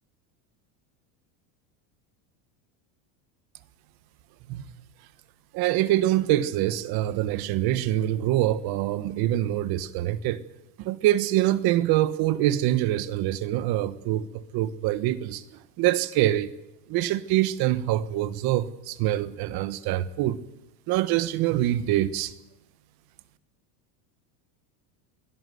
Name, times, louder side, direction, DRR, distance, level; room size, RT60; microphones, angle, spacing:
voice 1, 5.5-10.4 10.8-16.5 16.9-20.4 20.9-22.3, right 14 dB, 50° right, 1.4 m, -25 dB
23.0 x 17.0 x 8.0 m
supercardioid pair, 145°, 47 cm